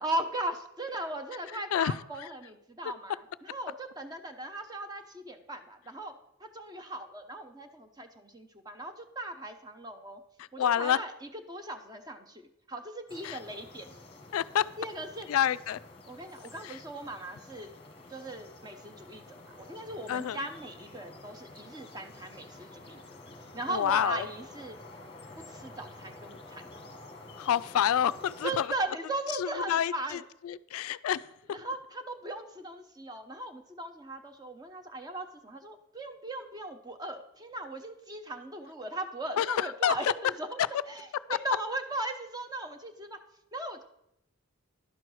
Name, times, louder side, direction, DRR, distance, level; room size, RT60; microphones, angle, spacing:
voice 1, 0.0-10.2 10.5-14.0 14.8-15.3 16.1-17.7 18.1-23.0 23.5-24.8 25.5-26.7 28.4-30.2 31.5-40.6 40.9-43.2 43.5-43.8, right 2 dB, 20° right, 6 dB, 0.7 m, -38 dB
voice 2, 1.7-2.3 10.4-11.0 13.2-13.4 14.3-14.7 15.3-15.8 16.6-16.8 20.1-20.4 23.7-24.3 27.4-28.7 29.4-31.3 39.4-40.1 41.3-41.4, left 9 dB, 75° left, 16 dB, 0.3 m, -28 dB
sound 1, 13.1-28.7, left 2 dB, 25° left, 1.1 m, -50 dB
11.0 x 4.5 x 6.2 m, 0.82 s
head